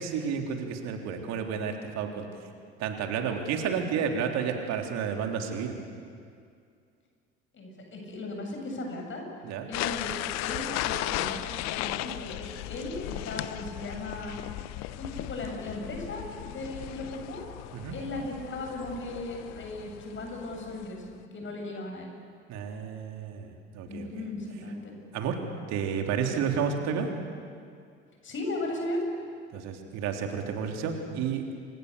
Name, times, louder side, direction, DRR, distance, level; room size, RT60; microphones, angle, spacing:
voice 1, 0.0-2.3 2.8-5.8 9.4-9.7 17.7-18.0 22.5-24.1 25.1-25.4 25.7-27.1 29.5-31.6, right 7 dB, 60° right, 3 dB, 3.5 m, -31 dB
voice 2, 7.5-9.2 9.7-11.4 11.7-14.4 15.0-17.4 17.9-22.1 23.9-24.9 28.2-29.0, left 2 dB, 40° left, 2 dB, 7.9 m, -37 dB
sound 1, 9.7-21.1, left 16 dB, 60° left, 0.9 m, -36 dB
29.5 x 25.5 x 6.9 m, 2.3 s
figure-of-eight pair, 60°, 31 cm